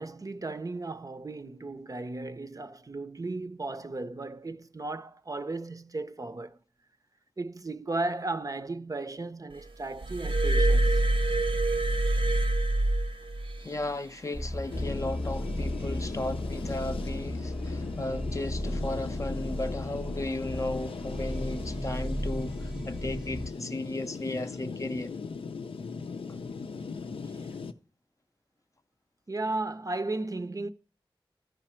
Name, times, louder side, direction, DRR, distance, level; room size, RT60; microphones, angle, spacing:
voice 1, 0.0-6.6 7.4-11.0 29.3-30.7, right 2 dB, 40° right, 0.5 m, -35 dB
Glass, 10.0-13.6 14.6-14.8, right 2 dB, 70° right, 0.7 m, -25 dB
voice 2, 13.6-25.1, left 2 dB, 35° left, 0.5 m, -35 dB
sound 1, 14.3-23.5, equal, 5° right, 0.7 m, -35 dB
sound 2, 14.7-27.7, left 5 dB, 80° left, 0.5 m, -39 dB
13.0 x 5.0 x 4.3 m
cardioid pair, 50°, 9 cm